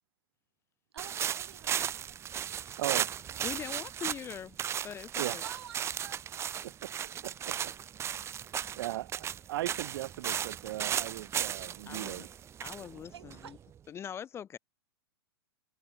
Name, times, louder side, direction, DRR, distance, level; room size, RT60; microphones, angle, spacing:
voice 1, 0.9-1.9 5.4-6.4 7.0-7.1 8.7-9.1 13.1-13.6, right 9 dB, 80° right, 1.9 m, -50 dB
sound 1, 1.0-13.8, right 9 dB, 20° right, 0.6 m, -36 dB
voice 2, 2.8-3.1 5.2-5.4 6.6-6.9 8.8-12.3, right 16 dB, 65° right, 0.4 m, -37 dB
voice 3, 3.4-4.6 4.8-5.4 11.9-12.3 12.6-13.6 13.9-14.6, left 8 dB, 20° left, 0.5 m, -42 dB
hypercardioid pair, 120°, 13 cm